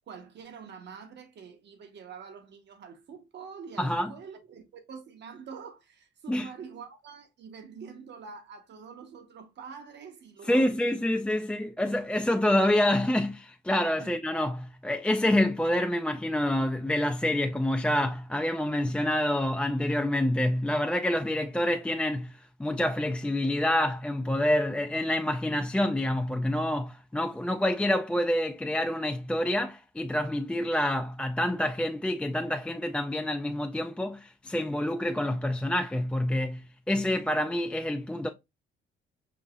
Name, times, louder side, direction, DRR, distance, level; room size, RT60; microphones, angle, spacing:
voice 1, 0.1-10.8 14.0-14.1, right 6 dB, 60° right, 1.0 m, -45 dB
voice 2, 3.8-4.1 6.3-6.5 10.5-38.3, left 1 dB, 5° left, 0.3 m, -27 dB
5.4 x 2.8 x 2.4 m
cardioid pair, 90°, 20 cm